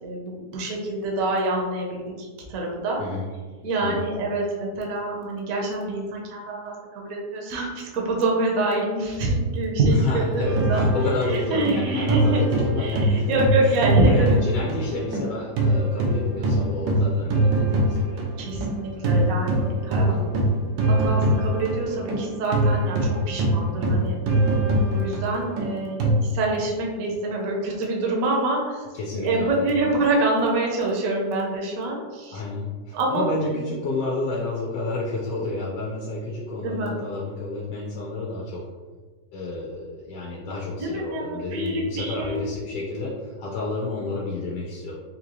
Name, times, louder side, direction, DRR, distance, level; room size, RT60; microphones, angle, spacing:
voice 1, 0.0-3.0 3.6-10.8 11.3-14.4 18.4-20.1 21.0-24.1 24.9-28.8 29.1-32.4 32.9-33.3 36.6-37.0 40.8-42.4, right 2 dB, 60° right, -2 dB, 1.1 m, -26 dB
voice 2, 9.9-13.4 13.6-18.2 19.0-19.4 19.9-20.4 28.9-29.7 32.3-38.6 39.3-45.0, left 2 dB, 90° left, -4 dB, 1.3 m, -30 dB
sound 1, 10.4-15.3 15.6-26.1, right 1 dB, 85° right, 1.3 m, -22 dB
3.8 x 2.7 x 2.9 m, 1.4 s
omnidirectional pair, 1.8 m